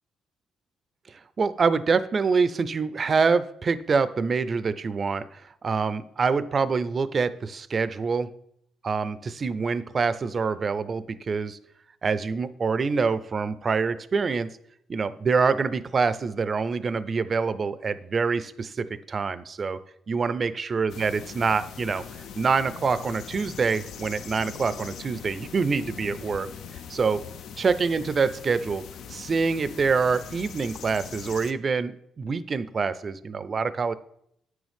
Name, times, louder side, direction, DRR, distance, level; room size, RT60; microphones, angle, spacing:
voice 1, 1.4-8.3 8.8-11.6 12.0-14.5 14.9-19.8 20.1-22.0 22.4-26.5 26.9-27.2 27.6-28.8 29.1-34.0, right 5 dB, 40° right, 15 dB, 0.4 m, -25 dB
sound 1, 20.9-31.5, left 7 dB, 75° left, 0.5 m, -41 dB
9.2 x 6.2 x 3.5 m, 0.72 s
cardioid pair, 90°, 0 cm